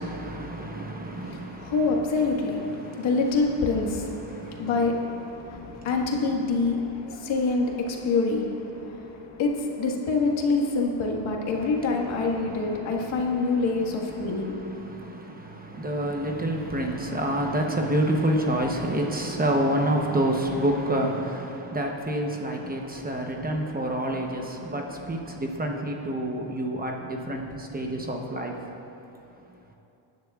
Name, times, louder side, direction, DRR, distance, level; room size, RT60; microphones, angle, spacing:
voice 1, 0.0-1.7 2.8-3.1 4.3-4.7 5.5-5.8 12.5-12.9 14.3-28.6, right 1 dB, 20° right, 1 dB, 0.8 m, -28 dB
voice 2, 1.1-14.6, left 3 dB, 70° left, 0 dB, 1.7 m, -26 dB
19.0 x 10.5 x 2.4 m, 3.0 s
cardioid pair, 130°, 48 cm